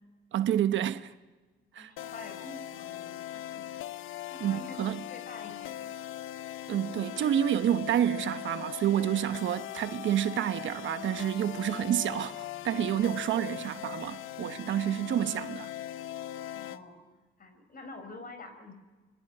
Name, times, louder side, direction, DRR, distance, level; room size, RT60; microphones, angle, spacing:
voice 1, 0.3-1.1 1.7-1.9 4.4-5.0 6.7-15.7, right 11 dB, 75° right, 1.1 m, -29 dB
voice 2, 1.8-3.7 4.3-4.8 5.1-5.9 13.6-13.7 16.5-17.0 17.4-18.7, left 3 dB, 45° left, 5.2 m, -47 dB
sound 1, 2.0-16.8, left 12 dB, 85° left, 1.0 m, -40 dB
26.0 x 23.0 x 10.0 m
cardioid pair, 90°, 20 cm